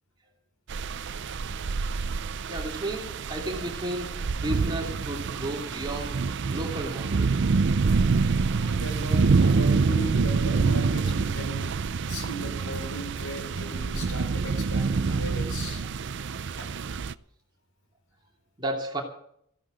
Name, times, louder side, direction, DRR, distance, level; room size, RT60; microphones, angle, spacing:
sound 1, 0.7-17.1, right 4 dB, 55° right, 0.5 m, -26 dB
voice 1, 2.5-7.5 8.9-9.1 18.6-19.0, right 1 dB, 20° right, 2.7 m, -33 dB
voice 2, 8.2-15.8 16.6-16.7, right 1 dB, 70° left, 4.6 m, -37 dB
15.0 x 12.0 x 6.3 m
head